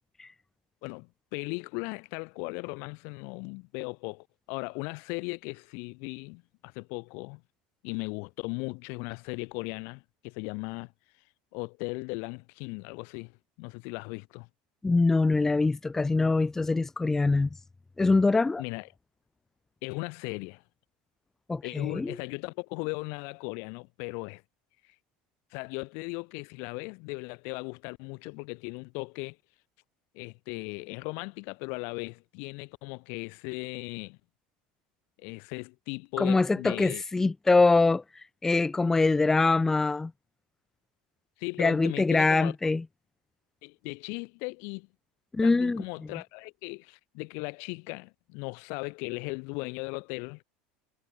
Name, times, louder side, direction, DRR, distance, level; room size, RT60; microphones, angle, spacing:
voice 1, 0.8-7.4 7.8-10.9 11.5-14.5 18.6-18.9 19.8-20.6 21.6-24.4 25.5-29.4 30.1-34.2 35.2-37.0 41.4-42.5 43.6-44.9 45.4-50.4, left 34 dB, 65° left, 2.8 m, -37 dB
voice 2, 14.8-17.5 18.0-18.6 21.5-22.2 36.2-40.1 41.6-42.8 45.3-45.8, left 3 dB, 10° left, 0.8 m, -24 dB
supercardioid pair, 140°, 4 cm